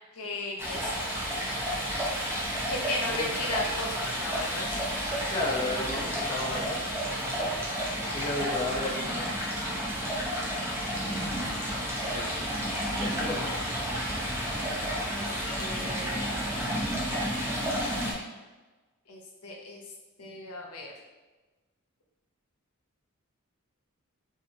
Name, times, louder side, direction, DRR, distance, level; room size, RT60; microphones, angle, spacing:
voice 1, 0.1-0.9 2.7-4.9 6.3-6.6 15.1-15.2 15.6-16.5 19.1-19.8 20.2-20.9, left 2 dB, 85° left, 0 dB, 0.8 m, -36 dB
Stream, 0.6-18.1, equal, 10° right, 0.7 m, -31 dB
voice 2, 5.3-7.5 8.1-9.4 12.0-12.4 13.0-13.5, left 2 dB, 25° left, -3 dB, 0.6 m, -34 dB
4.1 x 2.6 x 2.7 m, 1.2 s
head